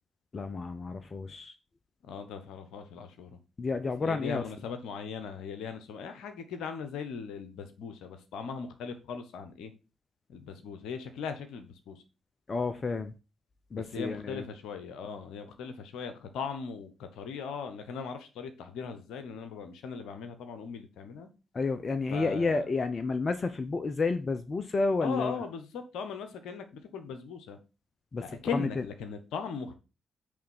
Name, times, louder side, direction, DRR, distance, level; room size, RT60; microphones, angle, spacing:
voice 1, 0.3-1.5 3.6-4.4 12.5-13.1 13.7-14.4 21.5-25.4 28.1-28.2 28.5-28.7, left 3 dB, 40° left, 0.8 m, -30 dB
voice 2, 2.0-3.4 4.0-9.7 10.3-12.0 13.7-21.3 22.1-22.6 25.0-27.6 28.2-29.8, left 6 dB, 70° left, 1.1 m, -39 dB
8.6 x 3.5 x 5.8 m
hypercardioid pair, 40°, 0 cm